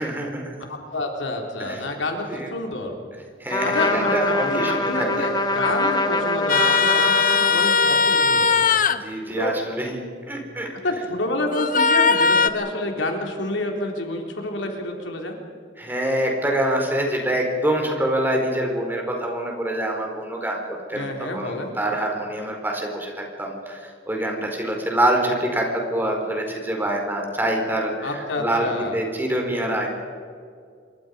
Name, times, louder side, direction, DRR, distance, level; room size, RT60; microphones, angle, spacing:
voice 1, 0.0-0.6 1.7-1.8 2.3-2.5 3.4-5.3 9.0-10.7 15.8-20.6 20.9-23.8 24.1-29.9, right 1 dB, 10° right, 1 dB, 4.4 m, -25 dB
voice 2, 0.7-2.9 3.6-8.8 9.4-9.5 10.8-15.4 20.9-21.7 28.0-29.0, left 1 dB, 80° left, 2 dB, 3.8 m, -28 dB
Trumpet, 3.5-8.1, left 2 dB, 20° left, 1.5 m, -24 dB
sound 1, 6.5-9.0 11.5-12.5, left 4 dB, 45° left, 1.0 m, -19 dB
27.0 x 23.5 x 5.3 m, 2.2 s
head